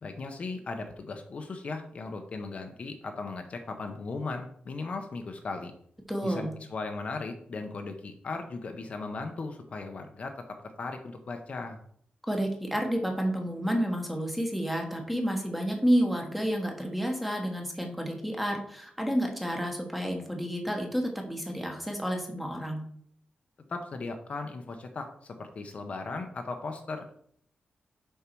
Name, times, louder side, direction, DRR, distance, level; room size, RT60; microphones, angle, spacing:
voice 1, 0.0-5.7 6.2-10.4 10.8-11.8 23.7-27.1, left 3 dB, 45° left, 5 dB, 0.7 m, -37 dB
voice 2, 6.1-6.5 12.3-22.8, equal, ahead, 2 dB, 1.2 m, -30 dB
6.8 x 5.5 x 4.6 m, 0.64 s
wide cardioid pair, 180°, 3 cm